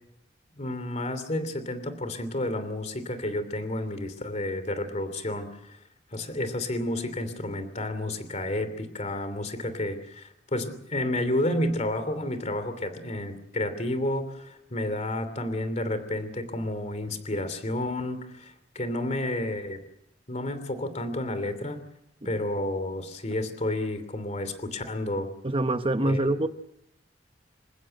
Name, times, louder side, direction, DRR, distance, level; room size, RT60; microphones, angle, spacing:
voice 1, 0.6-5.8 6.1-19.8 20.3-21.8 22.2-25.3 26.1-26.2, left 1 dB, 40° left, 2.9 m, -31 dB
voice 2, 25.4-26.5, right 1 dB, 30° right, 1.0 m, -25 dB
27.0 x 15.5 x 8.0 m
head